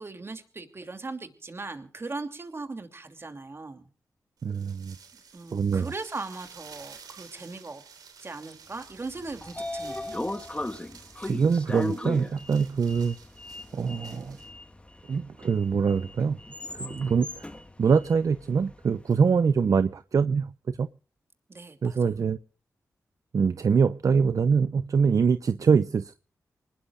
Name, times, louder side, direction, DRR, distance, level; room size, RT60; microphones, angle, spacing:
voice 1, 0.0-3.9 5.3-7.8 8.2-10.1 21.5-22.0, right 3 dB, 40° right, 2.9 m, -39 dB
voice 2, 4.4-5.0 5.5-5.9 11.2-13.2 13.7-14.4 15.1-16.4 16.7-17.5 17.8-20.9 21.8-22.4 23.3-26.2, right 5 dB, 60° right, 0.7 m, -24 dB
sound 1, 4.4-14.5, right 6 dB, 90° right, 3.3 m, -51 dB
Sliding door, 9.0-19.1, left 1 dB, 20° left, 1.9 m, -38 dB
25.0 x 20.0 x 2.5 m
cardioid pair, 55°, 6 cm